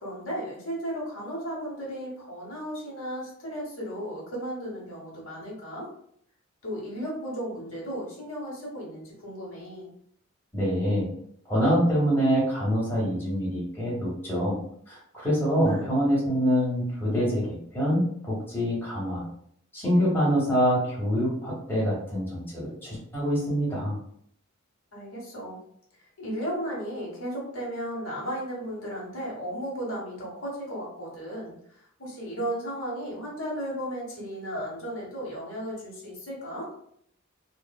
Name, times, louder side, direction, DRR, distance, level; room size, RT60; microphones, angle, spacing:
voice 1, 0.0-5.9 6.6-9.9 15.6-15.9 24.9-25.6 26.2-31.5 32.0-36.7, equal, 70° left, -3 dB, 1.0 m, -35 dB
voice 2, 10.5-11.1 11.5-14.6 14.9-19.2 19.7-24.0, equal, 10° left, -6 dB, 0.9 m, -25 dB
3.0 x 2.0 x 2.2 m, 0.66 s
head